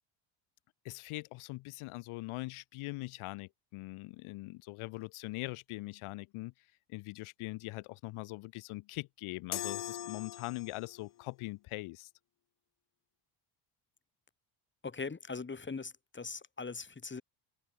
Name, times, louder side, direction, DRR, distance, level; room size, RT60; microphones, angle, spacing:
voice 1, 0.8-6.5 6.9-12.1, left 21 dB, 80° left, 4.0 m, -42 dB
sound 1, 9.5-11.0, left 13 dB, 50° left, 1.5 m, -40 dB
voice 2, 14.8-17.2, left 4 dB, 25° left, 5.9 m, -41 dB
cardioid pair, 105°, 49 cm